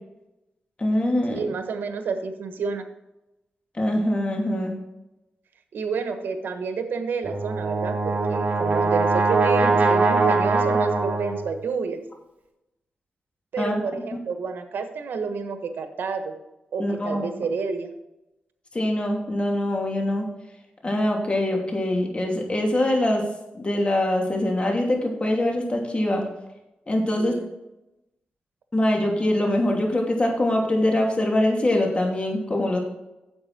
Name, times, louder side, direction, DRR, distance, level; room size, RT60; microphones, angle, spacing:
voice 1, 0.8-1.4 3.7-4.8 13.6-13.7 14.1-14.2 16.8-17.3 18.7-20.3 20.8-23.3 23.5-26.2 26.9-27.3 28.7-32.8, left 1 dB, 35° left, 1 dB, 2.8 m, -23 dB
voice 2, 1.3-2.8 5.7-12.0 13.5-16.3 16.7-17.9 27.2-27.5, right 5 dB, 85° right, 7 dB, 1.3 m, -29 dB
Brass instrument, 7.2-11.5, right 3 dB, 45° right, 2.6 m, -22 dB
9.8 x 7.7 x 4.4 m, 0.94 s
cardioid pair, 75°, 3 cm